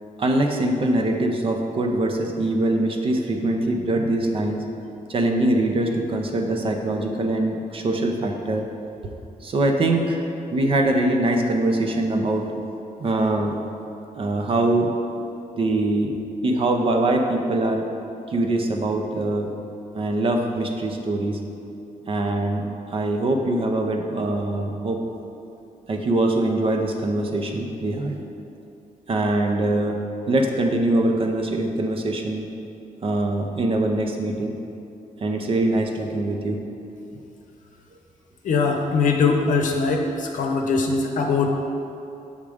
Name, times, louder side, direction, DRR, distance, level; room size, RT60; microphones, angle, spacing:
voice 1, 0.2-4.7 5.1-8.7 9.0-9.1 9.4-12.5 13.0-13.6 14.2-14.9 15.6-16.1 16.4-17.9 18.3-19.5 19.9-21.4 22.1-25.0 25.9-28.2 29.1-30.0 30.3-32.5 33.0-34.6 35.2-36.6, right 2 dB, 40° right, 3 dB, 0.6 m, -23 dB
voice 2, 38.4-41.5, left 4 dB, 70° left, 2 dB, 0.7 m, -21 dB
7.3 x 3.6 x 5.0 m, 2.7 s
wide cardioid pair, 150°, 14 cm